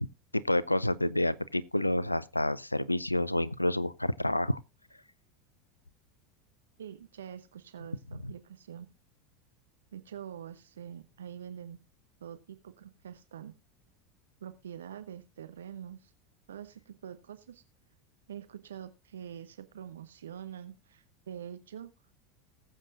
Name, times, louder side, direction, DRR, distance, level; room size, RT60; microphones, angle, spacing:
voice 1, 0.3-4.6 8.2-8.3, left 1 dB, 90° left, 0.5 m, -29 dB
voice 2, 6.8-8.9 9.9-11.8 12.2-13.6 14.4-16.1 16.5-17.6 18.3-21.9, right 9 dB, 70° right, 0.7 m, -45 dB
20.0 x 7.6 x 2.5 m
figure-of-eight pair, 80°, 0 cm